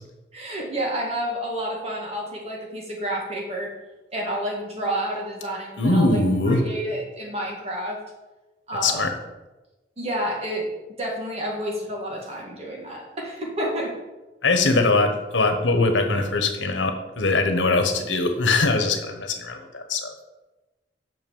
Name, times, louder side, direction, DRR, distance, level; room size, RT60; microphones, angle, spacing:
voice 1, 0.3-3.7 4.1-6.2 6.5-8.0 8.7-9.0 10.0-10.7 11.0-13.9, right 1 dB, 35° right, -2 dB, 2.0 m, -29 dB
voice 2, 5.8-6.6 8.8-9.1 14.4-20.1, left 3 dB, 90° left, 6 dB, 1.2 m, -21 dB
5.9 x 5.9 x 7.1 m, 1.1 s
head